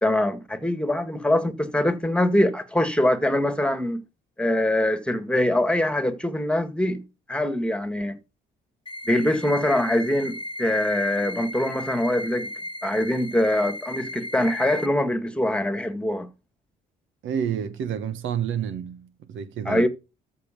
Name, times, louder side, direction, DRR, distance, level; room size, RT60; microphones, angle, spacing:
voice 1, 0.0-4.0 4.4-7.0 7.3-8.2 9.1-12.5 12.8-16.3 19.7-19.9, left 1 dB, 5° left, 1.9 m, -23 dB
sound 1, 8.9-14.9, left 1 dB, 25° left, 1.2 m, -35 dB
voice 2, 17.2-19.9, right 8 dB, 80° right, 1.4 m, -29 dB
13.5 x 5.5 x 5.3 m
cardioid pair, 90°, 20 cm